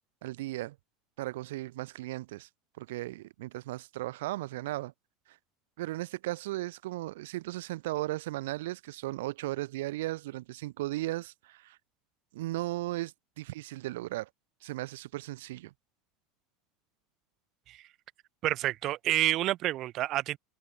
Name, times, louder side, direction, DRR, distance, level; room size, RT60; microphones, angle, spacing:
voice 1, 0.2-0.8 1.2-2.5 2.8-4.9 5.3-5.4 5.8-11.8 12.3-14.3 14.6-15.7, right 17 dB, 75° right, 4.3 m, -36 dB
voice 2, 18.4-20.4, right 15 dB, 50° right, 4.6 m, -29 dB
hypercardioid pair, 90°, 0 cm